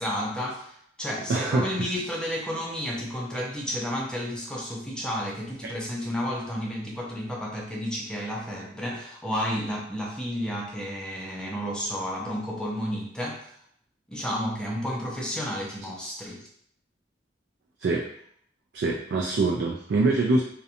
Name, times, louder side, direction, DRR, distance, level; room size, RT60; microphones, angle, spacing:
voice 1, 0.0-13.5 14.1-16.5, equal, 5° left, -2 dB, 0.5 m, -31 dB
voice 2, 1.3-1.9 17.8-18.0 18.7-20.4, right 3 dB, 65° right, -1 dB, 0.3 m, -24 dB
2.5 x 2.1 x 2.7 m, 0.66 s
head